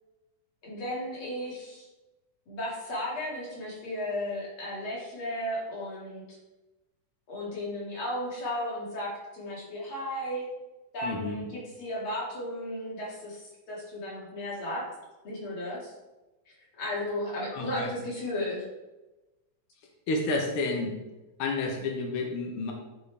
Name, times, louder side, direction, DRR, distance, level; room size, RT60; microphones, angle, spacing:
voice 1, 0.6-1.9 2.5-6.4 7.3-10.5 10.9-14.8 15.2-15.9 16.8-18.6, left 1 dB, 45° left, -5 dB, 2.7 m, -34 dB
voice 2, 11.0-11.4 17.5-17.9 20.1-20.9 21.4-22.7, left 3 dB, 80° left, 1 dB, 1.2 m, -30 dB
9.9 x 4.5 x 3.4 m, 1.1 s
omnidirectional pair, 3.7 m